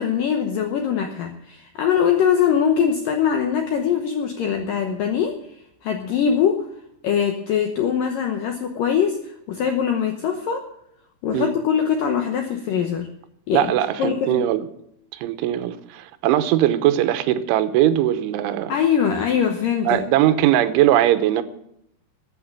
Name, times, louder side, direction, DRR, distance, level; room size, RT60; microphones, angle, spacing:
voice 1, 0.0-6.7 7.0-10.7 11.2-13.1 13.5-13.7 14.0-14.5 18.7-20.0, left 8 dB, 80° left, 2.0 m, -22 dB
voice 2, 13.5-14.6 15.1-18.7 19.9-21.4, right 12 dB, 90° right, 3.3 m, -20 dB
14.0 x 8.6 x 8.7 m
omnidirectional pair, 5.4 m